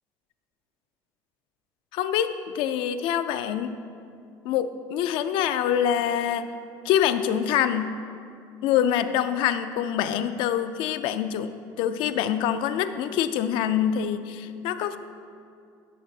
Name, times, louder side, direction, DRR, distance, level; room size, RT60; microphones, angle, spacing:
voice 1, 1.9-3.8 4.4-6.5 6.8-8.0 8.6-11.5 11.8-15.0, left 9 dB, 70° left, 11 dB, 0.4 m, -25 dB
10.5 x 6.4 x 2.7 m, 2.4 s
cardioid pair, 130°, 9 cm